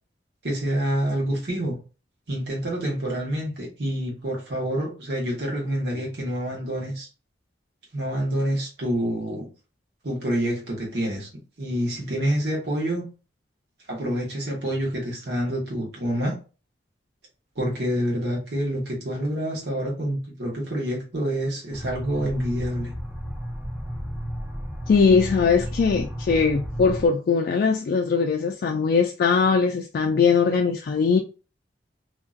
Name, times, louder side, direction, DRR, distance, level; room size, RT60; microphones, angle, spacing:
voice 1, 0.4-1.8 2.3-7.1 7.9-9.5 10.0-11.3 11.6-13.1 13.9-16.3 17.5-22.9, equal, 65° right, 1.4 m, -27 dB
sound 1, 21.7-27.1, equal, 5° right, 0.5 m, -33 dB
voice 2, 24.9-31.2, left 5 dB, 55° left, 0.3 m, -20 dB
2.8 x 2.6 x 2.4 m
head